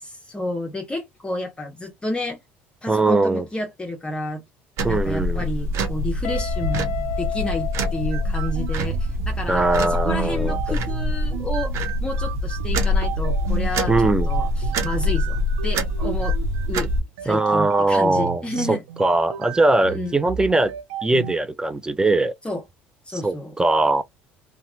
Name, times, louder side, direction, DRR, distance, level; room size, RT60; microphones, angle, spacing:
voice 1, 0.0-2.4 2.8-4.4 4.8-16.4 16.7-16.9 17.2-18.8 19.9-20.2 22.4-22.6 23.0-23.5, left 1 dB, 20° left, 0.8 m, -31 dB
voice 2, 2.9-3.5 4.8-5.5 9.5-10.8 13.9-14.3 17.2-20.7 21.0-22.3 23.1-24.0, right 2 dB, 15° right, 0.5 m, -21 dB
sound 1, 4.8-17.0, left 1 dB, 60° right, 1.0 m, -25 dB
Guitar, 6.2-9.1, left 13 dB, 70° left, 0.5 m, -32 dB
sound 2, 8.1-21.3, right 10 dB, 85° right, 0.4 m, -33 dB
2.9 x 2.2 x 2.7 m
hypercardioid pair, 70°, 5 cm